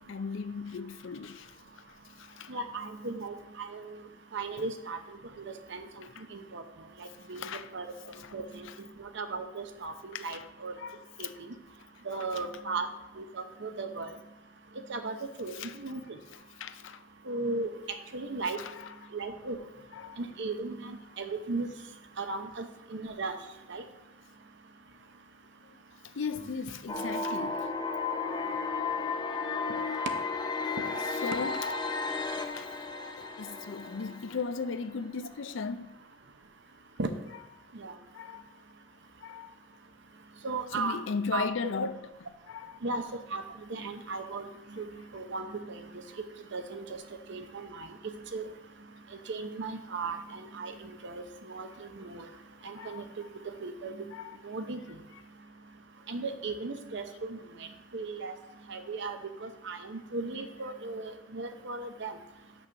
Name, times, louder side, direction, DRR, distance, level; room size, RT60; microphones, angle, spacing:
voice 1, 0.0-1.6 2.2-2.6 4.6-4.7 6.0-6.2 7.3-7.7 8.1-8.8 10.1-10.5 10.8-11.4 12.2-12.5 15.5-15.8 16.6-17.0 18.5-19.1 19.9-20.2 26.0-27.7 28.3-28.6 30.6-32.7 33.2-35.9 37.3-37.5 38.1-38.5 39.2-39.6 40.7-43.0 52.7-53.3 54.1-54.4 54.9-55.2 60.5-60.6, left 5 dB, 65° left, 0.5 m, -38 dB
voice 2, 2.5-4.0 4.3-5.0 5.4-5.5 5.7-6.6 7.0-7.9 8.3-10.7 11.2-11.5 12.1-12.9 13.2-14.1 14.9-16.2 17.3-17.7 18.1-18.6 19.1-19.6 20.2-21.7 22.2-23.4 23.7-23.8 37.0-37.1 37.7-37.9 40.4-41.0 41.3-41.5 42.8-43.0 43.3-43.4 43.7-44.4 44.7-44.9 45.1-45.9 46.5-46.8 47.3-47.9 48.3-48.5 49.3-52.3 52.6-53.0 53.6-54.0 54.4-54.8 56.1-57.4 57.9-58.3 58.7-62.2, right 3 dB, 60° right, 0.8 m, -36 dB
sound 1, 26.9-34.8, left 4 dB, 20° left, 0.6 m, -34 dB
6.2 x 6.1 x 6.4 m
head